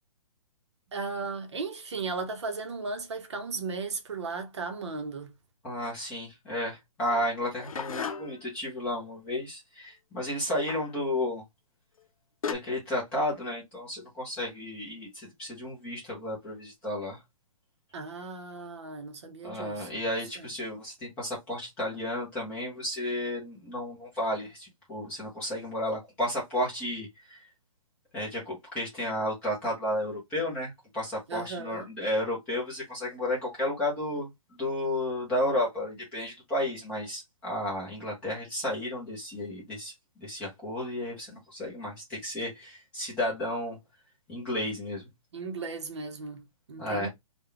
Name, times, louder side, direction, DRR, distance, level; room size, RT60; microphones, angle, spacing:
voice 1, 0.9-5.3 17.9-20.0 20.4-20.5 31.3-31.9 45.3-47.1, right 4 dB, 50° right, 0.8 m, -36 dB
voice 2, 5.6-11.4 12.5-17.2 19.4-27.4 28.1-34.3 34.6-39.9 40.2-43.8 44.3-45.0 46.8-47.1, left 1 dB, 5° left, 0.7 m, -32 dB
sound 1, 7.1-8.5 10.7-11.0 12.0-12.1 12.4-12.5, left 6 dB, 70° left, 0.6 m, -35 dB
3.7 x 2.3 x 3.3 m
hypercardioid pair, 175°, 19 cm